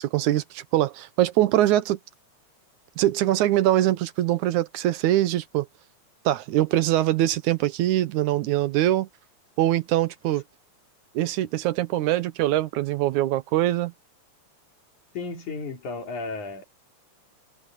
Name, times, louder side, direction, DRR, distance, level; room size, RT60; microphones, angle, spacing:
voice 1, 0.1-2.0 3.0-5.7 6.3-9.1 9.6-10.4 11.1-13.9, right 14 dB, 80° right, 2.3 m, -23 dB
voice 2, 15.1-16.6, left 3 dB, 80° left, 4.7 m, -33 dB
omnidirectional pair, 3.4 m